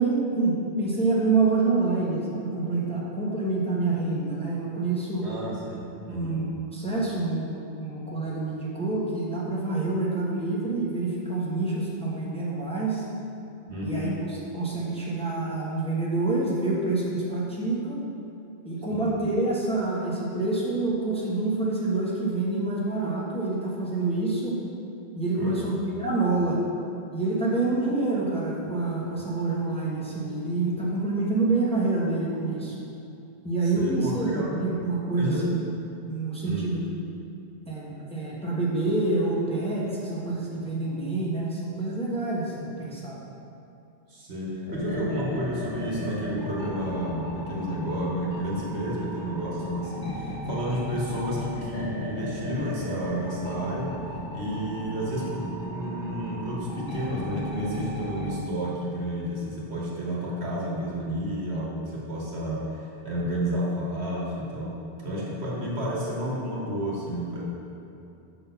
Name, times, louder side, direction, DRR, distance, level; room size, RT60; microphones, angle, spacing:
voice 1, 0.0-5.3 6.1-13.1 13.8-18.0 18.6-24.6 25.1-25.7 26.0-26.6 27.1-32.7 33.4-35.6 36.1-36.8 37.7-43.2, right 3 dB, 5° left, -6 dB, 0.9 m, -27 dB
voice 2, 5.2-6.4 13.7-14.2 18.9-19.1 25.4-25.7 33.6-34.5 35.2-35.4 36.4-36.9 44.1-53.9 54.3-64.7 65.0-67.4, equal, 75° right, -4 dB, 1.5 m, -31 dB
sound 1, 44.7-58.4, equal, 50° left, 1.2 m, -35 dB
6.4 x 4.0 x 5.5 m, 2.7 s
omnidirectional pair, 1.1 m